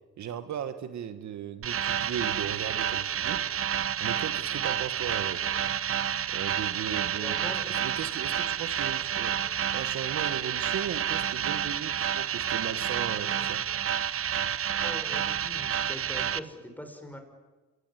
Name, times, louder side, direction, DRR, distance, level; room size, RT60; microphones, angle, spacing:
voice 1, 0.2-3.4 4.0-5.4 6.3-7.4 7.7-9.4 9.7-13.6, right 9 dB, 65° right, 10 dB, 1.6 m, -37 dB
sound 1, 1.6-16.4, right 9 dB, 50° right, 1.1 m, -29 dB
voice 2, 7.1-7.7 14.7-17.2, equal, 5° left, 5 dB, 5.8 m, -42 dB
27.5 x 18.5 x 9.9 m, 1.2 s
cardioid pair, 90°, 30 cm